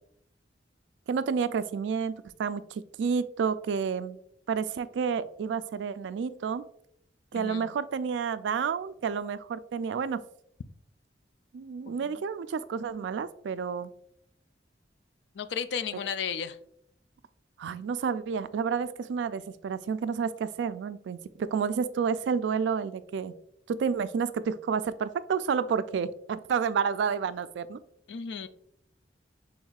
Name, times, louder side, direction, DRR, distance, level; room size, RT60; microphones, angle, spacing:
voice 1, 1.1-4.2 4.5-6.6 7.3-10.2 11.5-13.9 17.6-23.3 23.7-27.8, right 6 dB, 90° right, 14 dB, 0.3 m, -30 dB
voice 2, 7.3-7.7 11.9-12.2 15.4-16.6 28.1-28.5, left 7 dB, 70° left, 12 dB, 0.4 m, -34 dB
6.2 x 3.5 x 2.3 m, 0.71 s
head